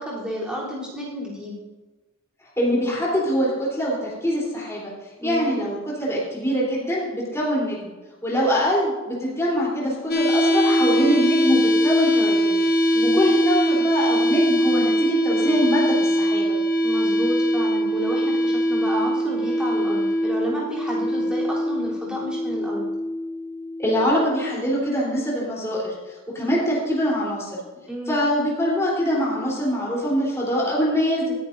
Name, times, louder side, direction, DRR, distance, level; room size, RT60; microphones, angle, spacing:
voice 1, 0.0-1.6 5.2-5.6 12.9-13.2 16.8-22.9 27.9-28.2, equal, 5° right, -7 dB, 3.3 m, -31 dB
voice 2, 2.6-4.9 5.2-7.9 8.2-12.6 13.0-16.6 23.8-26.0 26.3-27.6 28.1-31.3, equal, 15° left, -5 dB, 3.5 m, -23 dB
sound 1, 10.1-24.1, equal, 45° left, 1.1 m, -22 dB
19.0 x 10.0 x 2.6 m, 1.2 s
head